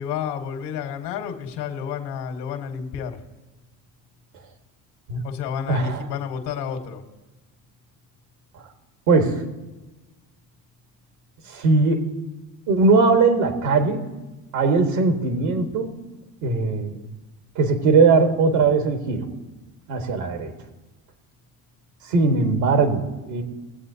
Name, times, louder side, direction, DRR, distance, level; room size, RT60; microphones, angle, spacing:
voice 1, 0.0-3.2 5.2-7.0, left 7 dB, 85° left, 5 dB, 1.5 m, -30 dB
voice 2, 5.7-6.0 9.1-9.4 11.5-12.0 12.7-14.0 14.5-15.9 16.4-17.0 17.6-19.2 19.9-20.5 22.1-23.4, right 4 dB, 80° right, 5 dB, 1.7 m, -19 dB
19.0 x 7.8 x 2.8 m, 1.2 s
supercardioid pair, 80°, 47 cm